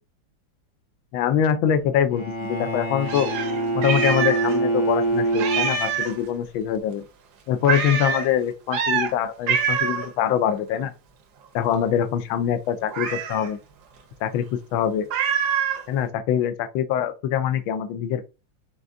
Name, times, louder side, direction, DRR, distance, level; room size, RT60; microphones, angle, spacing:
voice 1, 1.1-3.3 3.7-7.0 7.5-10.9 11.5-13.6 14.2-15.1 15.9-18.3, left 9 dB, 85° left, 1.4 m, -24 dB
Bowed string instrument, 2.1-6.2, right 2 dB, 35° left, 0.4 m, -25 dB
Meow, 3.1-4.6 4.8-4.9 5.3-6.2 7.7-8.3 8.7-9.1 9.5-10.1 12.9-13.5 15.1-15.8, right 6 dB, 65° right, 1.2 m, -25 dB
4.9 x 3.4 x 2.5 m
omnidirectional pair, 2.1 m